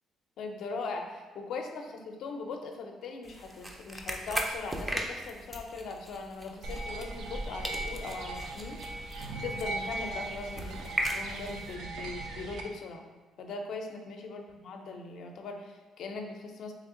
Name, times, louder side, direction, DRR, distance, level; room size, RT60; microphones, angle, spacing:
voice 1, 0.4-9.1 9.4-13.0 13.4-16.7, left 3 dB, 65° left, 4 dB, 0.5 m, -40 dB
sound 1, 3.2-7.4 7.6-11.7, right 1 dB, 15° right, 0.4 m, -38 dB
sound 2, 6.6-12.6, right 2 dB, 65° right, 0.5 m, -38 dB
3.4 x 3.1 x 3.7 m, 1.2 s
cardioid pair, 120°, 0 cm